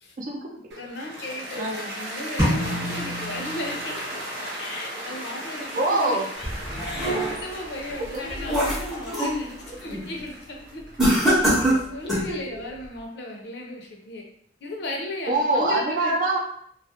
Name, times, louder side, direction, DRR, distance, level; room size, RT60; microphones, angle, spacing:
voice 1, 0.2-0.8 1.5-1.9 5.8-6.3 7.9-8.0 9.1-9.3 12.3-12.5 15.3-16.4, right 2 dB, 50° right, 0 dB, 0.4 m, -25 dB
Cheering / Applause, 0.7-12.9, equal, 80° right, 0.8 m, -37 dB
voice 2, 0.8-4.2 4.6-6.5 6.8-14.2 14.6-16.1, left 2 dB, 70° left, 1 dB, 0.5 m, -36 dB
sound 1, 2.4-4.3, equal, 20° right, 0.9 m, -28 dB
sound 2, 6.4-7.6 8.0-9.4 9.8-10.1 11.0-12.3, right 1 dB, ahead, 0.6 m, -24 dB
2.2 x 2.0 x 2.8 m, 0.64 s
head